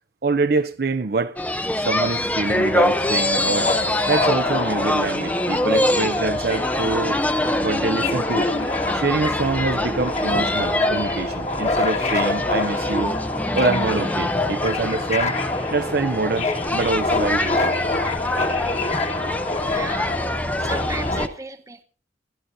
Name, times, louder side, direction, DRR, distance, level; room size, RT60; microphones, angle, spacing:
voice 1, 0.2-1.4 1.8-3.7 4.1-7.2 7.5-8.5 8.9-13.2 13.5-15.4 15.7-17.7, right 3 dB, 50° right, 0.5 m, -25 dB
sound 1, 1.4-21.3, left 1 dB, 10° left, 0.5 m, -25 dB
Subway metro underground, 2.4-21.2, left 3 dB, 35° left, 1.5 m, -27 dB
voice 2, 19.7-20.2 20.6-21.8, right 2 dB, 15° right, 1.0 m, -34 dB
27.5 x 12.0 x 2.6 m
head